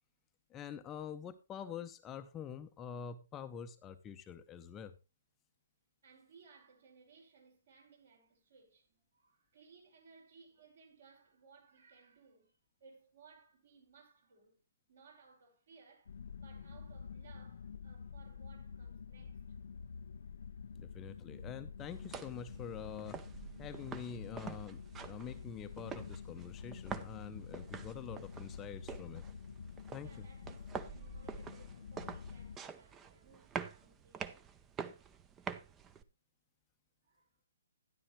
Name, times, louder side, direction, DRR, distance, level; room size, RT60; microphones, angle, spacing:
voice 1, 0.5-4.9 20.7-23.2 23.6-29.2 29.9-30.3, left 7 dB, 15° left, 0.7 m, -46 dB
voice 2, 6.0-12.5 12.8-14.6 14.9-19.4 30.0-34.6 35.0-35.1 37.0-37.3, right 5 dB, 60° right, 5.6 m, -62 dB
sound 1, 16.1-32.6, left 6 dB, 60° left, 0.5 m, -48 dB
sound 2, 21.8-36.0, right 6 dB, 15° right, 0.7 m, -47 dB
12.5 x 10.5 x 3.1 m
figure-of-eight pair, 135°, 0 cm